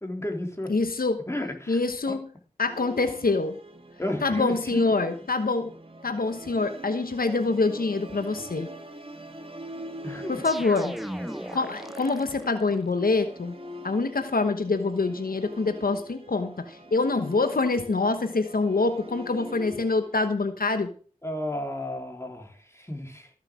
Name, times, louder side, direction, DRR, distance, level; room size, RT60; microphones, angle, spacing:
voice 1, 0.0-0.7 1.3-1.8 2.1-2.2 4.0-5.0 10.0-10.4 21.2-23.3, left 1 dB, 20° left, 3 dB, 3.4 m, -33 dB
voice 2, 0.7-1.2 1.7-2.3 2.6-3.6 4.2-5.7 6.0-8.7 10.3-10.9 11.5-13.5 13.8-20.9, left 3 dB, 85° left, 9 dB, 1.1 m, -25 dB
Musical instrument, 2.7-20.3, right 1 dB, 40° right, 1.7 m, -44 dB
sound 1, 10.4-12.7, equal, ahead, 0.8 m, -38 dB
14.5 x 7.4 x 6.2 m, 0.42 s
wide cardioid pair, 40°, 15 cm